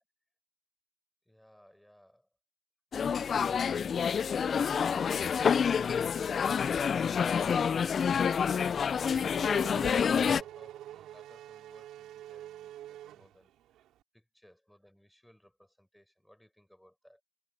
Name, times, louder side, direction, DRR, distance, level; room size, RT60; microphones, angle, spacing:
voice 1, 1.3-2.3 9.2-13.5 14.1-17.2, equal, 5° left, 6.3 m, -61 dB
sound 1, 2.9-10.4, left 7 dB, 50° left, 0.3 m, -28 dB
Race car auto racing / Accelerating revving vroom, 8.7-13.9, right 12 dB, 85° right, 4.4 m, -46 dB
cardioid pair, 90°, 0 cm